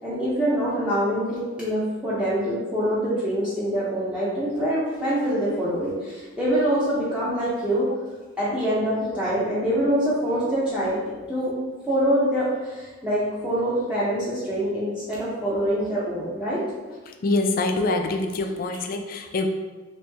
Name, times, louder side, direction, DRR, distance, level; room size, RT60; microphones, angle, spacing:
voice 1, 0.0-7.9 8.4-11.5 11.9-16.6, equal, 5° right, -10 dB, 0.6 m, -25 dB
voice 2, 17.2-19.5, left 2 dB, 45° left, 5 dB, 0.3 m, -25 dB
3.0 x 3.0 x 3.3 m, 1.3 s
head